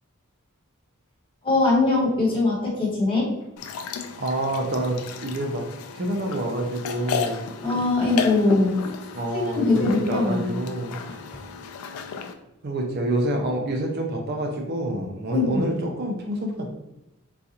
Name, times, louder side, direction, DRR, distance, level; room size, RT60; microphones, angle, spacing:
voice 1, 1.4-3.3 7.6-8.8 9.3-10.6 11.3-11.4 15.3-15.6, left 2 dB, 25° left, -5 dB, 1.2 m, -22 dB
sound 1, 3.6-12.3, left 6 dB, 80° left, 0.3 m, -34 dB
voice 2, 4.2-5.7 5.9-7.5 9.1-11.0 12.6-16.7, right 1 dB, 50° right, 2 dB, 0.5 m, -27 dB
3.9 x 2.4 x 2.8 m, 0.91 s
head